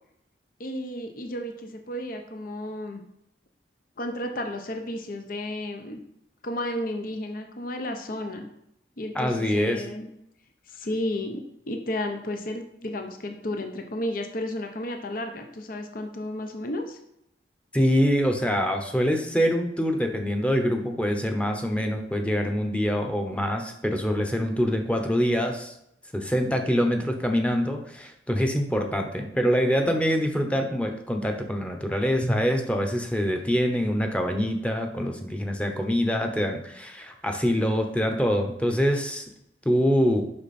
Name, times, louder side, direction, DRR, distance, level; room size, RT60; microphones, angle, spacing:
voice 1, 0.6-3.0 4.0-6.0 6.4-8.5 9.0-10.1 10.7-17.0, left 1 dB, 55° left, 5 dB, 0.9 m, -32 dB
voice 2, 9.1-9.8 17.7-25.7 26.1-39.2 39.6-40.2, equal, 5° left, 4 dB, 0.9 m, -25 dB
8.7 x 5.8 x 4.3 m, 0.78 s
head